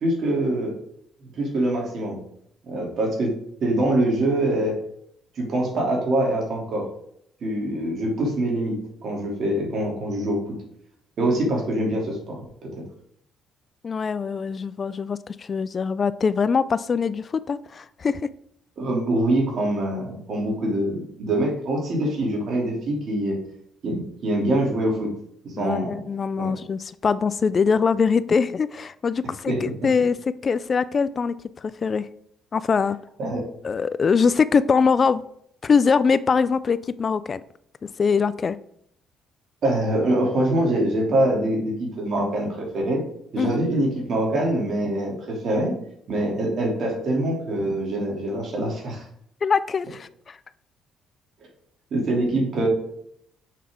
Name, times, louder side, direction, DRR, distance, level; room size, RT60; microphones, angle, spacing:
voice 1, 0.0-0.8 1.2-2.2 2.6-3.3 3.6-4.8 5.4-6.9 7.4-8.8 9.0-10.5 11.2-12.7 18.8-23.4 23.8-25.1 25.4-25.9 26.4-26.5 29.5-29.6 33.2-33.4 39.6-43.0 43.3-45.7 46.1-49.1 51.9-52.7, right 1 dB, 60° right, 0 dB, 2.8 m, -24 dB
voice 2, 13.8-18.3 25.6-32.1 32.5-33.0 33.6-35.2 35.6-37.4 37.8-38.6 43.4-43.6 49.4-50.4, left 5 dB, 40° left, 16 dB, 0.4 m, -23 dB
7.4 x 5.7 x 3.6 m, 0.70 s
supercardioid pair, 75°, 0 cm